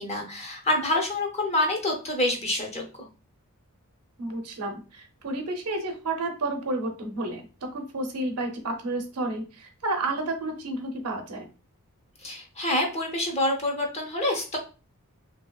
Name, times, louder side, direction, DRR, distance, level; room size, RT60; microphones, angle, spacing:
voice 1, 0.0-3.1 12.2-14.6, left 1 dB, 30° left, 1 dB, 0.7 m, -27 dB
voice 2, 4.2-11.5, right 2 dB, 75° right, 5 dB, 0.7 m, -31 dB
2.8 x 2.7 x 2.3 m, 0.34 s
head